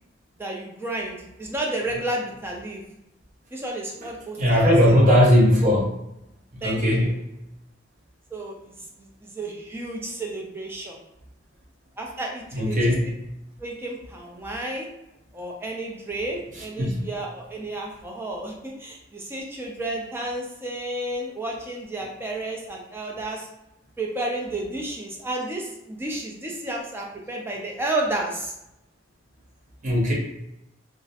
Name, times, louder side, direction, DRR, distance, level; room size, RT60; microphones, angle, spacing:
voice 1, 0.4-2.8 3.5-5.0 6.6-7.1 8.3-11.0 12.0-12.8 13.6-14.9 15.3-23.5 24.0-28.5, right 1 dB, 15° right, -1 dB, 0.4 m, -32 dB
voice 2, 4.4-5.8 6.6-7.1 12.6-13.0 16.8-17.0 29.8-30.1, equal, 45° right, -3 dB, 0.7 m, -18 dB
2.3 x 2.0 x 2.7 m, 0.85 s
head